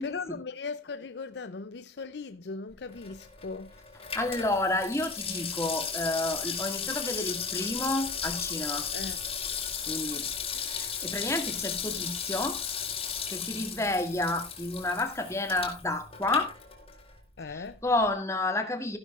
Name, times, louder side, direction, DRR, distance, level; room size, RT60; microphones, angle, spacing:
voice 1, 0.0-3.7 8.9-9.2 17.4-17.8, left 4 dB, 70° left, 0.6 m, -38 dB
Water tap faucet / Sink (filling or washing), 2.9-17.2 17.5-17.6, left 7 dB, 30° left, 3.5 m, -35 dB
voice 2, 4.1-8.9 9.9-10.3 10.6-12.6 13.3-16.5 17.5-19.0, left 2 dB, 15° left, 2.0 m, -30 dB
15.0 x 11.5 x 2.4 m
head